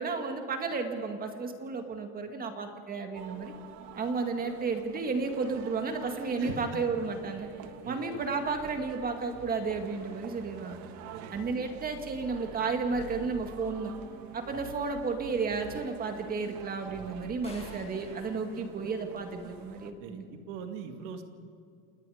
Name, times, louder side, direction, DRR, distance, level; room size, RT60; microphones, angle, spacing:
voice 1, 0.0-3.5 4.0-7.5 7.9-10.8 11.3-13.9 14.3-20.3, right 4 dB, 25° right, 5 dB, 2.0 m, -33 dB
sound 1, 3.1-19.9, right 9 dB, 55° right, 1.5 m, -47 dB
voice 2, 6.4-6.8 7.8-8.2 11.1-11.7 20.0-21.2, right 6 dB, 80° right, 6 dB, 2.3 m, -42 dB
sound 2, 17.4-19.6, left 2 dB, 20° left, 5.2 m, -51 dB
28.5 x 19.5 x 5.0 m, 2.3 s
cardioid pair, 145°, 34 cm